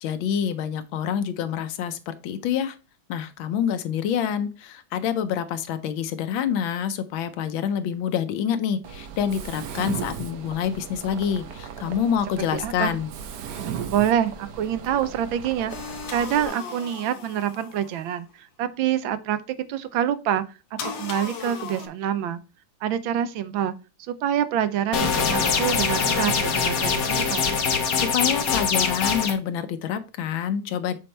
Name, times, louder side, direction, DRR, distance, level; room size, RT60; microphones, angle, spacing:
voice 1, 0.0-2.8 3.1-13.1 27.9-31.0, left 8 dB, 90° left, 1.5 m, -27 dB
Mechanisms, 8.8-16.5, right 7 dB, 65° right, 1.3 m, -37 dB
voice 2, 12.5-12.9 13.9-15.7 16.1-18.3 18.6-20.4 20.7-22.4 22.8-23.7 24.1-27.5, right 10 dB, 85° right, 1.4 m, -26 dB
sound 1, 15.7-18.2 20.8-21.9, left 6 dB, 75° left, 1.7 m, -36 dB
sound 2, 24.9-29.3, left 5 dB, 55° left, 1.3 m, -23 dB
7.3 x 4.3 x 3.2 m
omnidirectional pair, 2.1 m